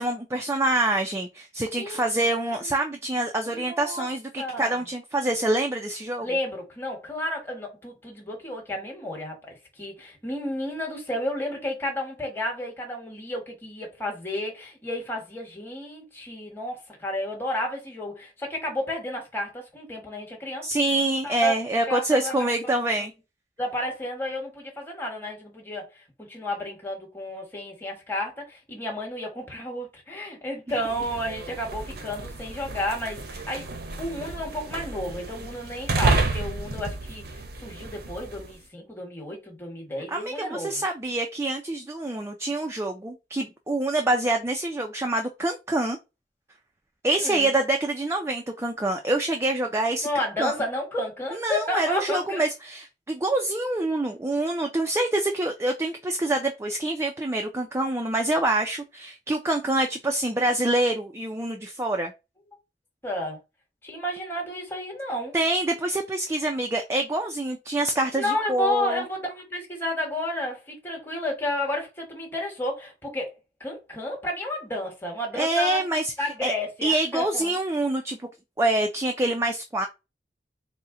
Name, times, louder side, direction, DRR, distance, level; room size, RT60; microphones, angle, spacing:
voice 1, 0.0-6.3 20.6-23.1 40.1-46.0 47.0-50.5 51.3-62.1 65.3-69.0 75.3-76.5 76.8-78.2 78.6-79.9, right 2 dB, 15° right, 0.4 m, -26 dB
voice 2, 3.5-4.1 4.4-4.8 6.2-20.7 21.2-21.5 21.9-22.8 23.6-33.7 34.0-40.8 47.2-47.6 50.0-52.4 63.0-63.4 63.8-65.4 68.1-75.8 76.2-77.5, left 1 dB, 15° left, 1.2 m, -32 dB
sound 1, 30.7-38.6, right 3 dB, 60° right, 0.7 m, -31 dB
4.1 x 2.1 x 3.7 m
head